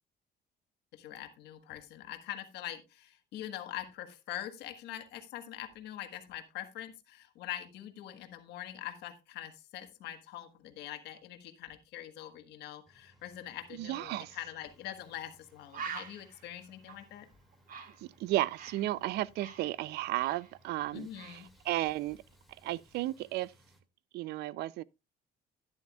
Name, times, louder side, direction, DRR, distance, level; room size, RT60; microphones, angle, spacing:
voice 1, 0.9-17.3 20.9-21.5, left 12 dB, 80° left, 1.4 m, -44 dB
sound 1, 12.9-23.8, equal, ahead, 1.9 m, -65 dB
voice 2, 13.7-14.4 18.0-22.2 22.6-23.5 24.1-24.8, right 16 dB, 75° right, 0.4 m, -34 dB
Bird, 14.9-15.0 15.3-15.4 15.7-18.9 19.2-20.9 21.1-21.4, right 6 dB, 55° right, 1.6 m, -46 dB
12.0 x 9.8 x 2.3 m
cardioid pair, 110°, 17 cm